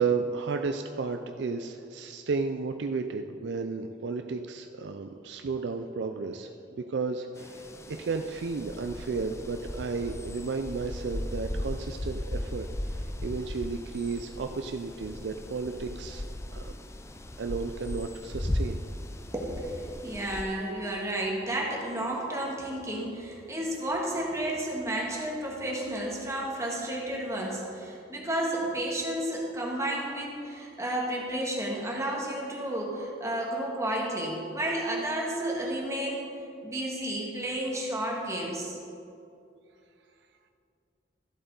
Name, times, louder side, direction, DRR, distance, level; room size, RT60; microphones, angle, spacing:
voice 1, 0.0-12.7 13.2-16.2 16.5-16.7 17.4-18.8, right 4 dB, 75° right, 6 dB, 0.4 m, -33 dB
sound 1, 7.4-20.4, left 1 dB, 15° left, 0.4 m, -37 dB
voice 2, 19.3-36.4 36.6-38.8, right 1 dB, 15° right, -2 dB, 1.6 m, -32 dB
13.5 x 7.8 x 3.9 m, 2.6 s
head